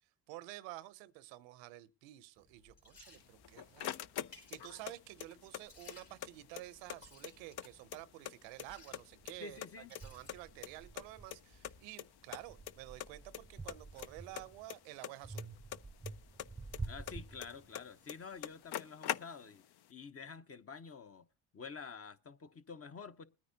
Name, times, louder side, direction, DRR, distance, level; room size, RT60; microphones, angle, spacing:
voice 1, 0.3-3.9 4.3-9.6 10.0-15.5, right 16 dB, 90° right, 0.7 m, -51 dB
Liquid, 2.4-14.7, left 2 dB, 75° left, 4.4 m, -64 dB
sound 1, 3.2-4.9 5.2-6.3 6.6-6.7 6.9-8.3 8.6-9.3 9.6-11.0 11.3-11.4 11.6-11.7 12.0-12.1 12.3-12.7 13.0-13.4 13.7-16.1 16.4-17.8 18.1-18.2 18.4-19.6, left 11 dB, 60° left, 0.6 m, -42 dB
sound 2, 9.2-9.3 10.0-11.9 12.3-14.7 15.2-18.0, right 3 dB, 10° right, 0.6 m, -48 dB
voice 2, 9.4-9.9 16.9-19.6 19.9-21.3 21.5-23.2, left 5 dB, 35° left, 0.9 m, -49 dB
21.0 x 9.5 x 2.7 m
supercardioid pair, 70°, 43 cm